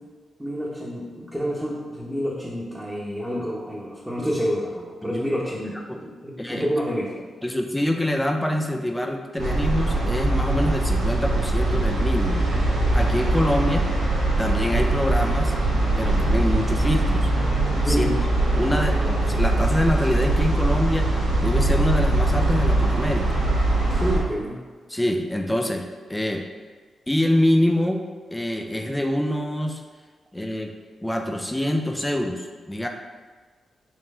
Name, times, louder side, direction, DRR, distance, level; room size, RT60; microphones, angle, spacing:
voice 1, 0.4-7.1 17.9-18.2 23.9-24.6, equal, 15° right, -8 dB, 1.2 m, -28 dB
voice 2, 6.4-6.7 7.4-12.4 12.9-13.9 14.4-15.6 16.0-17.3 17.8-18.1 18.6-23.4 24.9-26.5 27.1-28.0 28.3-29.8 30.3-30.7 31.0-32.9, left 1 dB, 10° left, 3 dB, 0.6 m, -25 dB
sound 1, 9.4-24.2, right 2 dB, 85° right, 1.1 m, -22 dB
4.5 x 3.1 x 3.7 m, 1.5 s
supercardioid pair, 40°, 0 cm